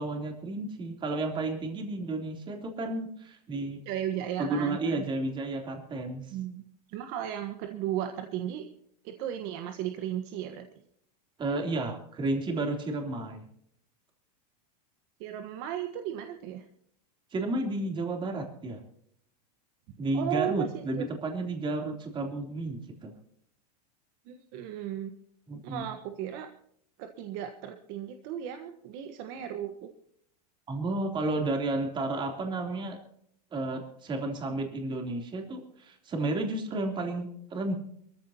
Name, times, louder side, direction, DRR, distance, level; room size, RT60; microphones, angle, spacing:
voice 1, 0.0-3.8 4.4-6.4 11.4-13.4 17.3-18.8 20.0-23.1 25.5-25.8 30.7-33.0 33.5-37.7, right 2 dB, 25° right, 3 dB, 3.4 m, -32 dB
voice 2, 3.8-5.1 6.3-8.7 9.0-10.7 15.2-16.6 20.1-21.1 24.3-25.1 25.6-26.5 27.0-29.9, right 11 dB, 50° right, 6 dB, 1.4 m, -35 dB
23.0 x 14.5 x 2.9 m, 0.69 s
supercardioid pair, 140°, 21 cm